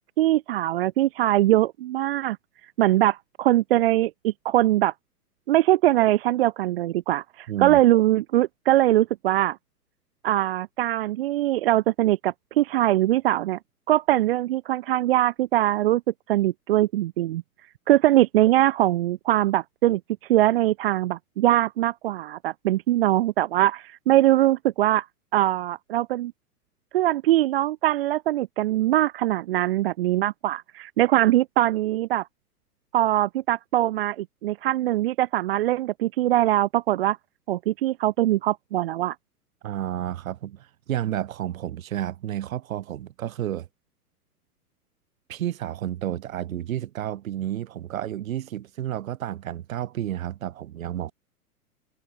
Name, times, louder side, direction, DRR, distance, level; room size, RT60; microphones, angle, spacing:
voice 1, 0.2-2.4 2.8-4.9 5.5-9.6 10.2-13.6 13.9-16.0 16.3-17.4 17.9-20.0 20.3-25.1 25.3-26.3 26.9-32.3 32.9-37.2 37.5-39.2, right 14 dB, 40° right, 0.5 m, -22 dB
voice 2, 7.5-7.8 19.9-20.0 39.6-43.7 45.3-51.1, right 12 dB, 60° right, 3.0 m, -31 dB
hypercardioid pair, 115°, 46 cm